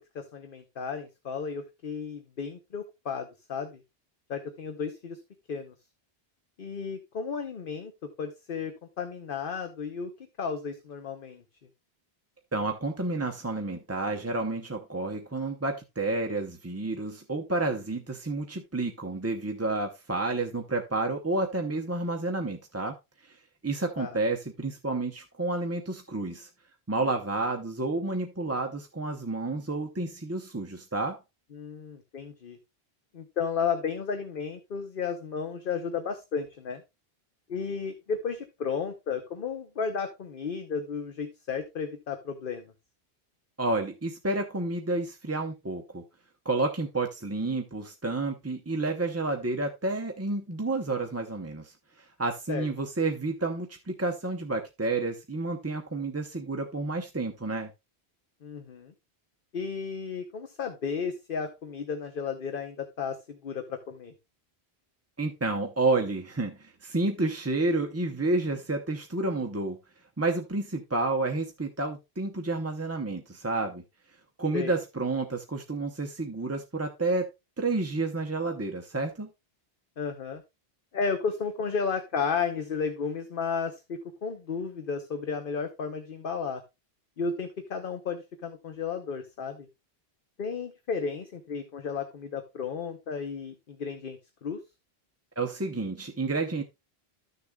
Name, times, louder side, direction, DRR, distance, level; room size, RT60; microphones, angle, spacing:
voice 1, 0.1-3.8 4.3-5.2 5.5-5.7 6.6-7.9 8.2-10.1 10.4-11.4 24.0-24.2 31.5-32.6 33.1-36.8 37.5-42.6 52.5-52.7 58.4-58.9 59.5-64.1 74.5-74.8 80.0-80.4 80.9-86.6 87.2-89.7 90.4-94.6, left 5 dB, 55° left, 1.0 m, -33 dB
voice 2, 12.5-22.9 23.2-23.4 23.6-26.5 26.9-31.2 43.6-46.0 46.4-57.7 65.2-69.8 70.2-73.8 74.4-77.3 77.6-79.3 95.4-96.6, right 2 dB, 20° right, 0.6 m, -30 dB
13.0 x 6.6 x 2.3 m
omnidirectional pair, 1.1 m